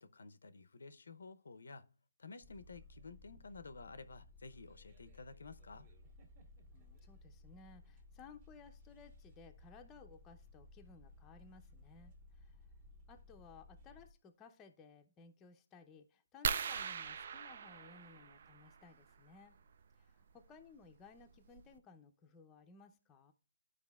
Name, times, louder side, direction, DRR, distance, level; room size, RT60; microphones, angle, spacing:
voice 1, 0.0-1.9 2.2-5.9, left 4 dB, 80° left, 0.6 m, -52 dB
sound 1, 2.4-14.1, left 2 dB, 35° right, 1.7 m, -59 dB
voice 2, 6.7-12.7 13.1-19.6 20.0-23.3, left 5 dB, 15° left, 0.6 m, -59 dB
sound 2, 16.4-18.8 20.4-20.6 21.2-21.3 21.6-21.8, right 6 dB, 50° right, 0.4 m, -40 dB
12.5 x 4.8 x 2.3 m
hypercardioid pair, 160°, 0 cm